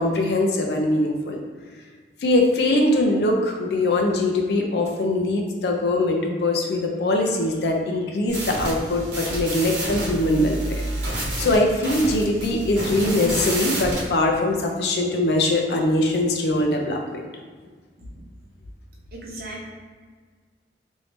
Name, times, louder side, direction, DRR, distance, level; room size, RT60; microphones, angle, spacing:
voice 1, 0.0-1.4 2.2-10.8 11.1-17.2, left 1 dB, 65° left, 1 dB, 0.5 m, -22 dB
sound 1, 8.3-14.1, right 1 dB, 85° right, 0.9 m, -29 dB
voice 2, 19.1-19.7, right 1 dB, 55° right, -3 dB, 0.7 m, -38 dB
3.1 x 2.7 x 3.0 m, 1.6 s
head